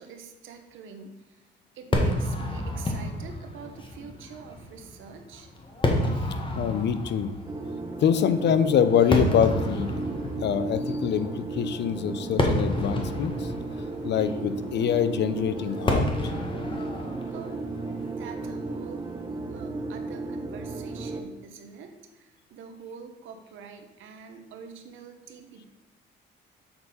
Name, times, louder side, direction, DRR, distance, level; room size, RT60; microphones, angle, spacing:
voice 1, 0.0-1.4 1.7-5.5 17.3-17.8 18.1-19.1 19.5-25.7, right 6 dB, 80° right, 5 dB, 0.9 m, -45 dB
Fireworks, 1.9-19.3, left 1 dB, 25° left, 1.3 m, -31 dB
voice 2, 6.6-7.4 8.0-9.9 10.4-13.5 14.0-16.3, left 8 dB, 60° left, 12 dB, 0.6 m, -25 dB
sound 1, 7.5-21.2, right 3 dB, 20° right, 0.9 m, -35 dB
7.2 x 4.0 x 5.3 m, 1.0 s
cardioid pair, 90°, 20 cm